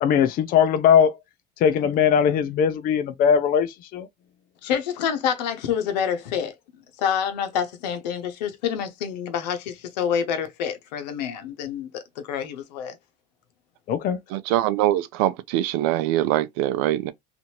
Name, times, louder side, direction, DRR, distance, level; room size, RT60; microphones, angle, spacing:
voice 1, 0.0-1.1 1.6-4.1 13.9-14.2, left 8 dB, 45° left, 0.5 m, -20 dB
voice 2, 4.6-6.5 7.0-13.0, left 8 dB, 85° left, 0.8 m, -27 dB
voice 3, 14.3-17.1, right 14 dB, 70° right, 0.5 m, -23 dB
2.7 x 2.5 x 2.9 m
supercardioid pair, 95°, 21 cm